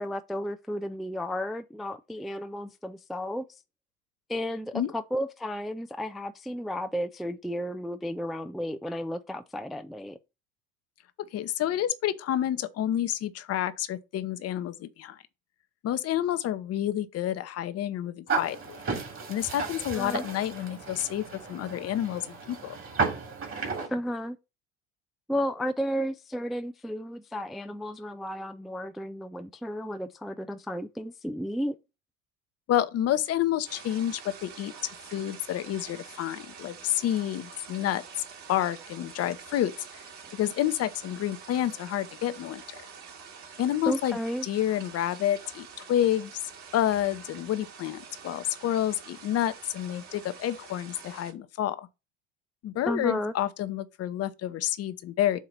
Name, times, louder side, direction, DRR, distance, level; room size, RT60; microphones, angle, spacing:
voice 1, 0.0-3.4 4.3-10.2 19.9-20.3 23.6-24.4 25.3-31.8 43.9-44.5 52.8-53.3, equal, ahead, 0.4 m, -33 dB
voice 2, 11.3-15.2 15.8-18.8 19.3-22.8 32.7-34.7 35.1-38.0 38.5-40.0 40.3-42.6 43.6-44.2 44.4-46.3 46.7-51.9 52.6-55.4, left 11 dB, 45° left, 0.8 m, -29 dB
sound 1, 18.3-23.9, right 4 dB, 40° right, 2.7 m, -33 dB
sound 2, 33.6-51.3, right 6 dB, 55° right, 3.5 m, -47 dB
7.3 x 2.9 x 5.1 m
hypercardioid pair, 70°, 34 cm